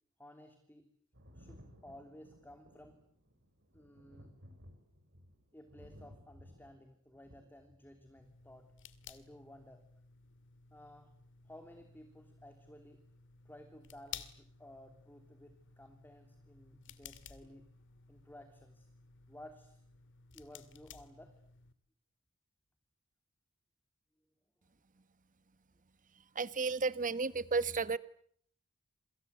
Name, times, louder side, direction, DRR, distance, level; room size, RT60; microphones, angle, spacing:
voice 1, 0.2-0.9 1.3-3.0 3.7-4.3 5.5-8.7 9.1-9.8 10.7-11.2 11.4-13.0 13.4-17.7 18.1-18.9 19.3-19.8 20.3-21.4, left 1 dB, 10° left, 6 dB, 3.1 m, -56 dB
Thunder, 1.1-8.5 9.6-9.7, equal, 55° right, 7.2 m, -58 dB
sound 1, 8.2-21.7, left 8 dB, 60° left, 2.3 m, -55 dB
voice 2, 26.3-28.0, right 4 dB, 40° right, 15 dB, 1.2 m, -33 dB
28.0 x 26.0 x 8.2 m, 0.64 s
head